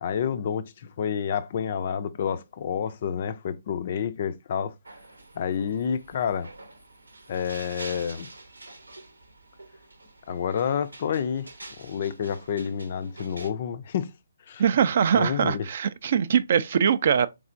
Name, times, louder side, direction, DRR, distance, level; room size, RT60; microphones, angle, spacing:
voice 1, 0.0-4.7 5.4-6.5 7.3-8.3 10.3-11.5 11.8-14.1 14.5-14.6 15.1-15.7, left 8 dB, 40° left, 0.3 m, -29 dB
sound 1, 4.8-13.5, right 2 dB, 85° right, 0.8 m, -46 dB
voice 2, 14.6-17.3, right 7 dB, 45° right, 0.3 m, -22 dB
3.6 x 3.2 x 2.5 m
figure-of-eight pair, 145°, 0 cm